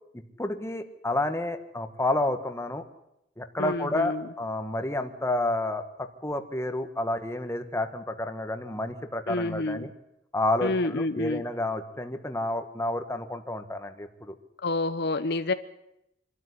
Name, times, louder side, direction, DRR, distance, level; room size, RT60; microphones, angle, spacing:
voice 1, 0.4-2.8 3.4-9.9 10.3-14.3, left 2 dB, 15° left, 7 dB, 1.6 m, -30 dB
voice 2, 3.6-4.3 9.3-9.9 10.6-11.4 14.6-15.5, left 2 dB, 65° left, 11 dB, 0.9 m, -28 dB
25.0 x 12.5 x 10.0 m, 0.83 s
head